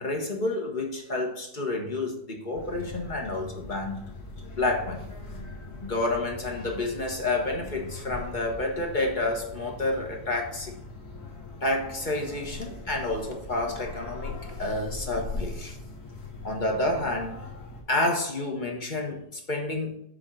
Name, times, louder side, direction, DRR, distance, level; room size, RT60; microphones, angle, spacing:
voice 1, 0.0-4.0 4.6-5.0 5.8-10.7 11.6-15.8 16.4-17.3 17.9-20.0, left 2 dB, 35° left, 2 dB, 1.1 m, -29 dB
sound 1, 2.5-17.8, left 3 dB, 65° left, 2.4 m, -40 dB
7.7 x 3.7 x 6.1 m, 0.72 s
omnidirectional pair, 1.7 m